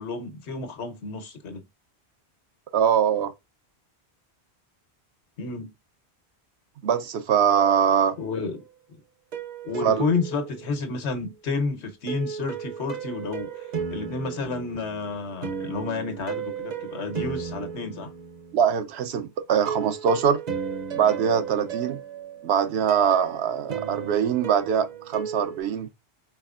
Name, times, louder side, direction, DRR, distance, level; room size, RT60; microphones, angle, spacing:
voice 1, 0.0-1.6 5.4-5.7 8.2-8.6 9.6-18.1, left 4 dB, 90° left, 1.2 m, -31 dB
voice 2, 2.7-3.3 6.8-8.2 9.8-10.1 18.5-20.4 21.0-22.0 22.4-25.9, right 8 dB, 75° right, 0.9 m, -23 dB
sound 1, 7.5-8.5 9.3-11.1 12.1-18.8 19.7-25.6, right 7 dB, 45° right, 0.7 m, -35 dB
4.8 x 4.2 x 2.4 m
omnidirectional pair, 1.1 m